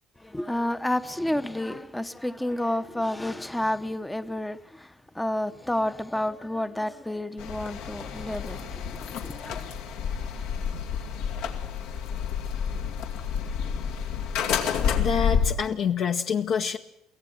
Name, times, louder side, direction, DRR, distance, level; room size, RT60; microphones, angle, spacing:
voice 1, 0.2-9.7, left 1 dB, 5° left, 0.8 m, -30 dB
sound 1, 7.4-15.5, left 7 dB, 85° left, 2.4 m, -29 dB
voice 2, 15.0-16.8, left 7 dB, 50° left, 0.9 m, -26 dB
24.0 x 16.0 x 7.7 m
cardioid pair, 130°, 0 cm